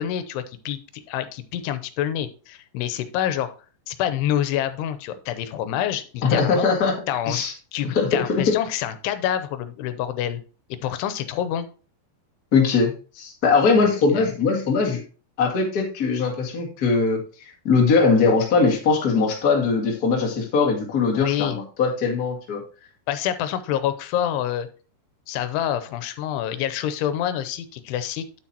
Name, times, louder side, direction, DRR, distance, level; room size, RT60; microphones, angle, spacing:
voice 1, 0.0-3.5 3.9-6.7 7.1-7.4 7.7-10.4 10.7-11.7 13.8-14.3 21.1-21.6 23.1-24.7 25.3-28.4, left 10 dB, 90° left, 11 dB, 2.8 m, -27 dB
voice 2, 6.2-6.9 7.3-7.5 7.8-8.1 8.5-8.6 12.5-15.0 15.4-22.6, left 4 dB, 40° left, 0 dB, 1.4 m, -21 dB
8.9 x 8.7 x 2.8 m, 0.36 s
omnidirectional pair, 4.7 m